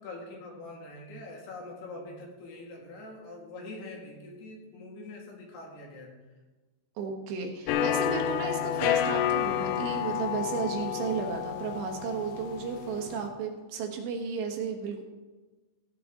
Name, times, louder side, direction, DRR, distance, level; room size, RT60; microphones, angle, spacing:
voice 1, 0.0-6.1, left 2 dB, 65° left, -1 dB, 3.9 m, -44 dB
voice 2, 7.0-15.0, right 5 dB, 70° right, 2 dB, 3.2 m, -34 dB
sound 1, 7.7-13.3, left 10 dB, 80° left, 2.8 m, -30 dB
16.0 x 10.0 x 3.7 m, 1.2 s
omnidirectional pair, 5.5 m